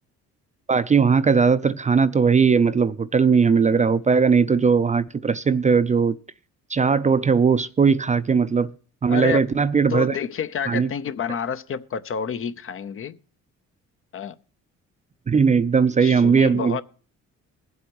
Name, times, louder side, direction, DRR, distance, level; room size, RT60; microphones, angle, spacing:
voice 1, 0.7-6.2 6.7-8.7 9.0-10.2 10.7-10.9 15.3-16.8, right 5 dB, 25° right, 0.4 m, -19 dB
voice 2, 9.1-9.4 9.9-13.2 14.1-14.4 16.0-16.8, left 7 dB, 45° left, 0.6 m, -29 dB
22.0 x 7.9 x 2.9 m
cardioid pair, 90°, 30 cm